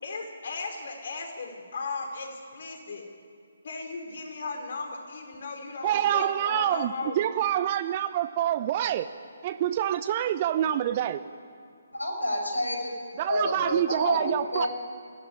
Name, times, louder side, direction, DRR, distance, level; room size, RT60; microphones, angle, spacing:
voice 1, 0.0-3.0 3.6-7.2, left 3 dB, 50° left, 3 dB, 4.9 m, -36 dB
voice 2, 5.8-9.1 9.4-11.2 13.2-14.7, right 11 dB, 30° right, 11 dB, 0.7 m, -26 dB
voice 3, 11.9-12.9 13.3-14.7, left 1 dB, 85° left, 3 dB, 6.2 m, -29 dB
22.5 x 16.0 x 9.9 m, 2.3 s
figure-of-eight pair, 140°, 0 cm